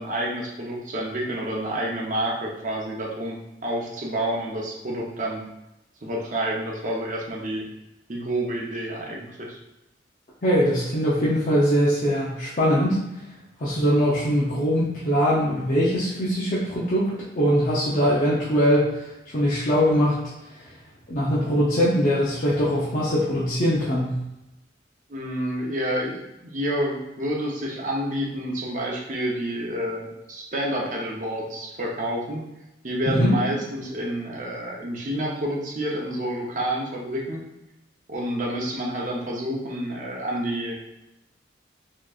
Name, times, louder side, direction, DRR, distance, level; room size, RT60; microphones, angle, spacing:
voice 1, 0.0-5.4 6.0-7.7 8.1-9.6 25.1-32.4 32.8-37.5 38.1-40.7, right 1 dB, 45° right, -2 dB, 0.8 m, -29 dB
voice 2, 10.4-13.0 13.6-19.0 19.3-20.2 20.5-20.6 21.1-24.2 33.1-33.3, equal, 45° left, -8 dB, 0.7 m, -22 dB
4.4 x 3.0 x 2.4 m, 0.93 s
head